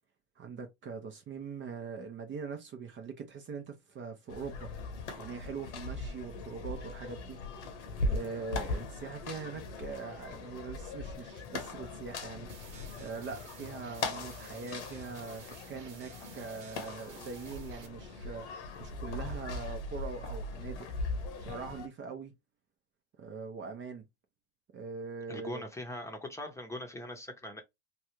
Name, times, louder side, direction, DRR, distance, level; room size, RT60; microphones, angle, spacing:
voice 1, 0.4-4.7 5.2-7.7 8.0-12.5 13.0-20.9 21.4-22.3 23.2-24.1 24.7-25.6, right 5 dB, 35° right, 0.7 m, -42 dB
sound 1, 4.3-21.9, left 3 dB, 80° left, 1.1 m, -40 dB
sound 2, 12.5-17.9, right 7 dB, 80° right, 1.1 m, -54 dB
voice 2, 25.3-27.6, left 1 dB, 10° left, 0.9 m, -41 dB
3.1 x 2.4 x 3.0 m
hypercardioid pair, 90°, 34 cm